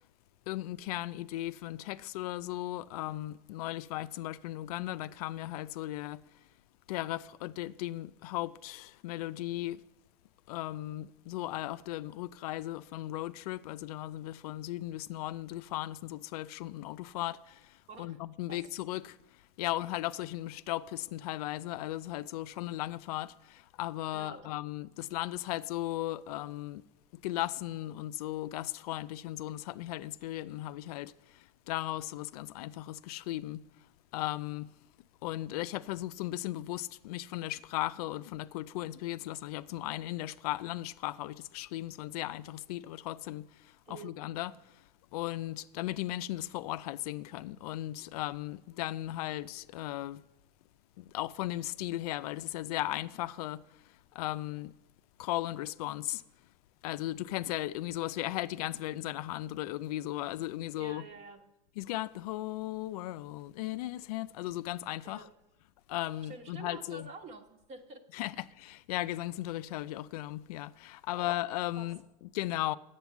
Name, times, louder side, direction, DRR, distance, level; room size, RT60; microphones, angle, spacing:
voice 1, 0.5-6.4 6.9-9.8 10.5-26.8 27.1-33.9 34.1-34.7 35.2-50.3 51.0-54.7 55.2-56.2 56.8-61.1 61.8-65.3 65.9-67.1 68.1-72.8, left 15 dB, 70° left, 0.4 m, -37 dB
voice 2, 17.9-18.2 18.5-18.6 24.1-24.5 43.8-44.1 60.8-61.4 65.0-65.3 66.3-68.0 68.3-68.4 71.1-71.3 71.8-71.9, right 4 dB, 35° right, 1.3 m, -48 dB
9.2 x 8.0 x 7.1 m
supercardioid pair, 120°, 20 cm